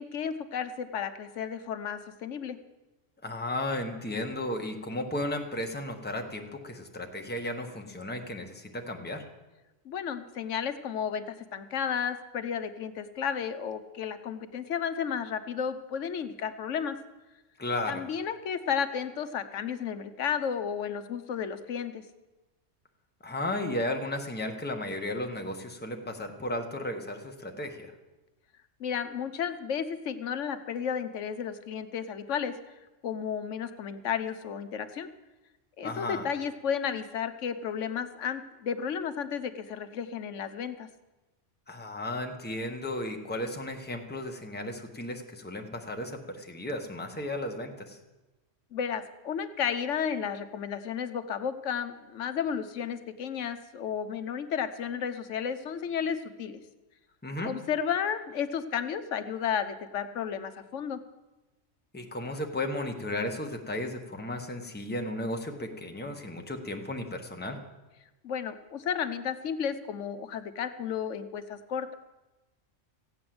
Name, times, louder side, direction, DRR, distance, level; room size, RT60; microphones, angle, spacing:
voice 1, 0.0-2.6 9.8-17.0 17.9-22.0 28.8-32.5 33.0-35.1 35.8-40.9 48.7-56.6 57.4-61.0 68.2-71.9, left 7 dB, 80° left, 9 dB, 1.2 m, -33 dB
voice 2, 3.2-9.2 17.6-18.0 23.2-27.9 35.8-36.3 41.7-48.0 57.2-57.5 61.9-67.6, left 1 dB, 10° left, 3 dB, 1.2 m, -34 dB
15.5 x 8.7 x 7.8 m, 1.1 s
omnidirectional pair, 1.3 m